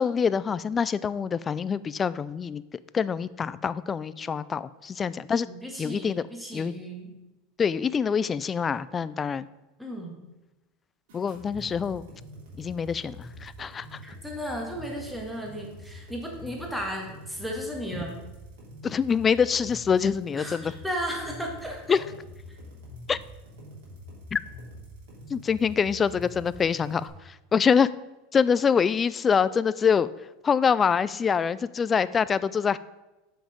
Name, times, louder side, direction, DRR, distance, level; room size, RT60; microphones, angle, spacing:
voice 1, 0.0-2.6 2.9-5.5 5.8-6.2 6.5-6.7 7.6-9.5 11.1-12.1 12.6-14.0 18.8-20.7 21.9-22.0 23.1-23.2 24.3-24.4 25.3-27.9 28.3-30.1 30.4-32.8, left 6 dB, 25° left, 17 dB, 0.3 m, -25 dB
voice 2, 5.4-7.1 9.8-10.2 14.0-18.2 20.3-21.8, equal, ahead, 0 dB, 1.8 m, -35 dB
sound 1, 11.1-27.1, left 1 dB, 75° right, 3.1 m, -45 dB
7.2 x 5.9 x 5.1 m, 1.0 s
supercardioid pair, 125°, 0 cm